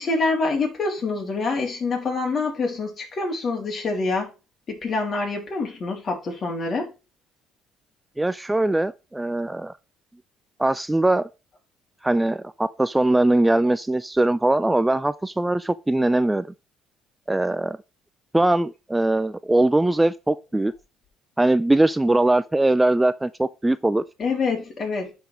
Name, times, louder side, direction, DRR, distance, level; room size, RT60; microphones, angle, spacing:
voice 1, 0.0-4.3 4.7-6.9 24.2-25.1, left 3 dB, 40° left, 3.0 m, -26 dB
voice 2, 8.2-9.7 10.6-11.3 12.0-16.5 17.3-17.8 18.3-20.7 21.4-24.0, right 2 dB, 10° right, 0.3 m, -21 dB
10.5 x 4.3 x 3.3 m
cardioid pair, 95°, 0 cm